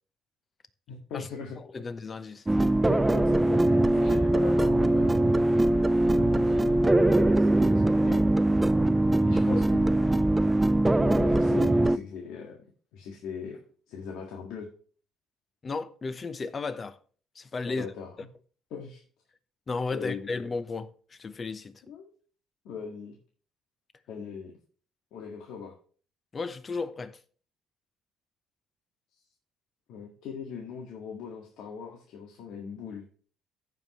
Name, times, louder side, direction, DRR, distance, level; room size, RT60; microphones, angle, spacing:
voice 1, 0.9-1.6 2.9-5.2 6.1-8.2 9.2-9.9 11.0-12.6 12.9-13.6 13.9-14.7 17.7-18.3 18.7-19.0 19.9-20.3 21.9-22.1 22.7-23.2 24.1-24.5 25.1-25.7 29.9-33.1, left 6 dB, 75° left, 1.8 m, -40 dB
voice 2, 1.7-2.5 9.3-9.7 15.6-17.0 17.3-17.9 19.7-21.8 26.3-27.2, left 4 dB, 30° left, 0.9 m, -34 dB
sound 1, 2.5-12.0, right 1 dB, 10° right, 0.4 m, -22 dB
15.0 x 5.4 x 3.1 m
cardioid pair, 115°, 0 cm